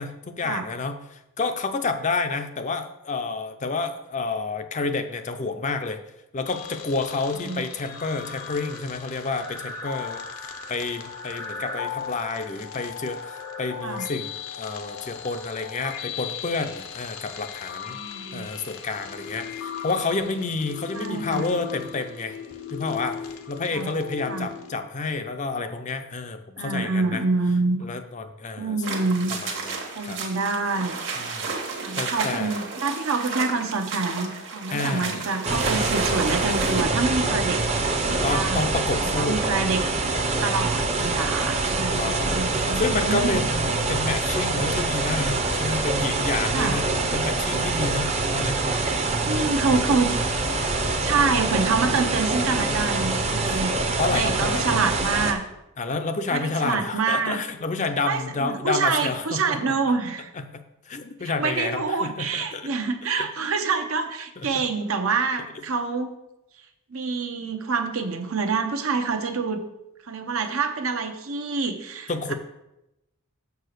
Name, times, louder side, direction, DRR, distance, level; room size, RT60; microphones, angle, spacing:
voice 1, 0.0-6.0 6.3-18.0 18.3-22.4 22.7-27.2 27.8-28.8 29.3-30.2 31.2-32.6 34.7-35.3 38.1-39.5 41.7-46.8 47.1-48.7 53.5-53.6 54.0-54.7 55.8-59.6 60.3-60.5 60.9-62.7 63.2-63.3 64.4-64.5 72.1-72.3, left 3 dB, 35° left, 7 dB, 0.5 m, -29 dB
sound 1, 6.4-24.7, left 7 dB, 75° left, 0.8 m, -37 dB
voice 2, 7.4-7.7 13.8-14.1 17.9-18.5 20.9-21.5 23.7-23.9 24.3-24.5 26.6-27.8 28.6-29.4 30.0-31.0 31.8-37.6 38.0-38.7 39.0-39.8 40.4-43.4 46.5-46.8 49.3-50.1 51.0-53.7 54.1-55.4 56.3-57.4 58.0-60.3 61.2-66.1 66.9-69.7 70.1-72.3, right 4 dB, 70° right, 6 dB, 0.9 m, -26 dB
sound 2, 28.8-36.8, right 4 dB, 55° right, 1.4 m, -32 dB
sound 3, 35.4-55.3, right 3 dB, 30° right, 0.7 m, -25 dB
6.8 x 4.6 x 6.6 m, 0.90 s
head